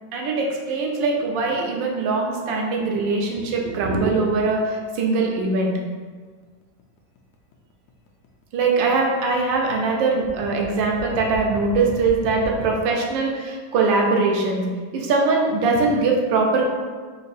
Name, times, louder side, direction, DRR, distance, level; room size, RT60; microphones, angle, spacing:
voice 1, 0.1-5.7 8.5-14.6 14.9-16.7, right 3 dB, 90° right, 0 dB, 1.4 m, -21 dB
sound 1, 5.7-12.7, left 2 dB, 85° left, 1.4 m, -37 dB
3.9 x 2.6 x 4.1 m, 1.5 s
omnidirectional pair, 2.0 m